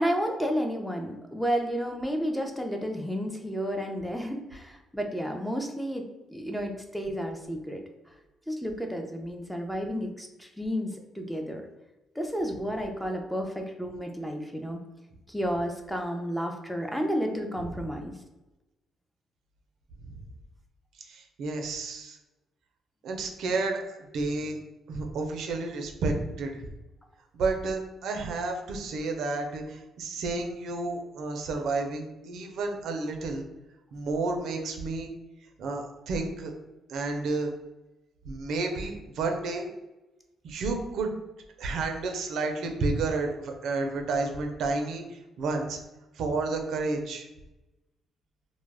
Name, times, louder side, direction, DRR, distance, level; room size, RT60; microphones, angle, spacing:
voice 1, 0.0-6.0 6.3-7.8 8.5-11.6 12.2-14.8 15.3-18.2, equal, ahead, 3 dB, 0.4 m, -31 dB
voice 2, 21.0-22.2 23.0-24.6 24.9-26.5 27.3-33.4 33.9-35.1 35.6-36.5 36.9-37.5 38.2-39.7 40.4-41.1 41.6-45.8 46.1-47.3, right 3 dB, 75° right, 3 dB, 0.4 m, -31 dB
2.2 x 2.0 x 3.2 m, 1.0 s
cardioid pair, 90°, 0 cm